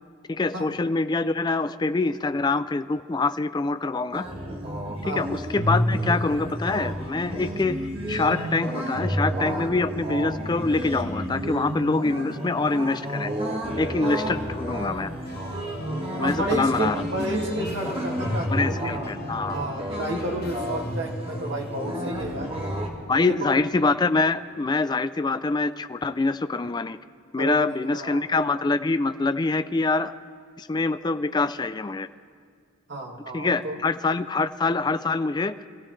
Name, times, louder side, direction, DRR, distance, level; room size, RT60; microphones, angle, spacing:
voice 1, 0.3-4.2 5.1-7.8 8.1-13.3 13.8-15.1 16.2-17.0 18.5-19.6 23.1-27.0 27.3-30.1 30.6-32.1 33.3-35.6, left 3 dB, 20° left, 12 dB, 0.4 m, -25 dB
sound 1, 4.1-22.9, equal, 30° right, 1.7 m, -30 dB
sound 2, 15.2-22.7, left 1 dB, 50° left, 1.1 m, -42 dB
voice 2, 16.2-18.9 19.5-22.5 23.3-23.5 27.4-28.3 32.9-33.8, right 1 dB, 60° right, 0 dB, 2.1 m, -31 dB
25.5 x 15.5 x 3.2 m, 2.2 s
head